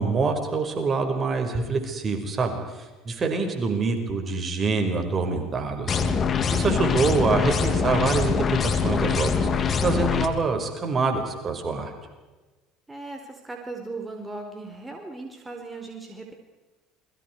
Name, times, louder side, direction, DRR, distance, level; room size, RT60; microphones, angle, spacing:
voice 1, 0.0-6.1 6.5-8.4 8.6-9.5 9.8-11.9, right 4 dB, 35° right, 5 dB, 5.5 m, -25 dB
sound 1, 5.9-10.3, left 6 dB, 40° left, 2.9 m, -24 dB
voice 2, 12.9-16.3, right 3 dB, 15° right, 2 dB, 4.4 m, -38 dB
28.5 x 23.0 x 4.8 m, 1.2 s
hypercardioid pair, 70°, 0 cm